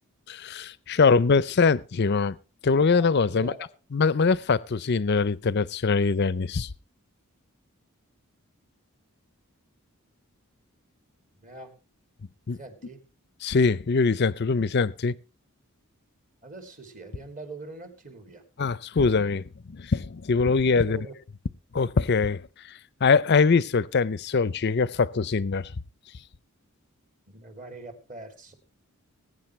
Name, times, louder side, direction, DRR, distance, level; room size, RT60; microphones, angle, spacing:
voice 1, 0.3-2.4 2.6-3.5 3.9-6.7 12.5-12.6 13.4-15.1 18.6-21.1 21.7-22.4 23.0-25.7, left 4 dB, 50° left, 0.5 m, -23 dB
voice 2, 2.9-3.7 11.4-11.7 12.5-13.0 16.4-18.4 20.8-21.2 27.3-28.5, right 2 dB, 35° right, 2.6 m, -43 dB
21.0 x 9.5 x 3.1 m
head